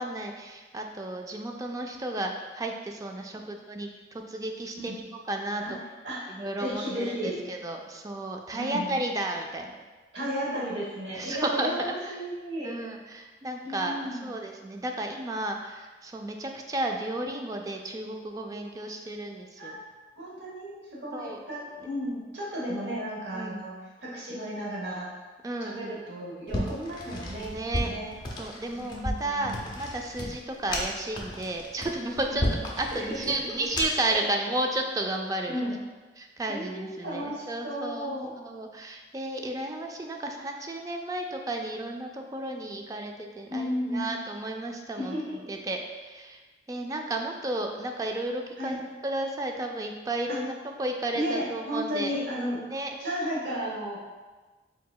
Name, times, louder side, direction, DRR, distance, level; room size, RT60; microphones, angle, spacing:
voice 1, 0.0-5.0 5.3-5.6 6.3-9.8 11.1-12.2 12.6-19.8 21.1-21.4 23.3-23.6 25.4-25.8 27.3-27.9 28.4-32.4 32.8-35.6 36.2-45.2 45.5-46.4 46.7-48.8 49.0-50.5 50.8-52.2 52.7-53.0, right 1 dB, 20° right, 3 dB, 0.3 m, -33 dB
voice 2, 6.6-7.4 8.5-8.9 10.1-12.7 13.6-14.4 19.6-19.8 20.2-25.1 25.6-27.5 27.8-28.1 28.8-29.6 32.3-32.5 32.9-33.4 35.5-35.8 36.5-38.3 43.5-44.1 45.0-45.5 48.6-48.8 50.3-50.4 51.1-52.6 53.0-54.0, equal, 80° right, -6 dB, 1.2 m, -34 dB
sound 1, 26.5-34.1, left 1 dB, 25° left, 0.6 m, -34 dB
4.8 x 3.8 x 2.2 m, 1.3 s
head